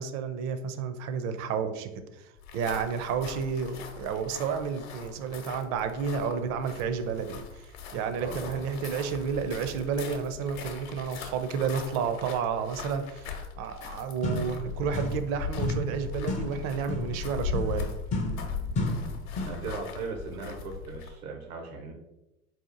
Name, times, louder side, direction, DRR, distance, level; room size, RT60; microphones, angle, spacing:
voice 1, 0.0-1.9 2.2-2.3 2.5-17.9, right 6 dB, 40° right, 9 dB, 0.5 m, -31 dB
sound 1, 2.4-21.2, left 5 dB, 70° left, 0.9 m, -40 dB
voice 2, 8.2-8.6 19.0-21.9, right 3 dB, 80° right, 1 dB, 0.8 m, -38 dB
sound 2, 13.8-13.9 14.2-15.3 15.6-19.7, left 2 dB, 20° left, 0.4 m, -33 dB
4.2 x 2.4 x 3.8 m, 0.96 s
hypercardioid pair, 90°, 43 cm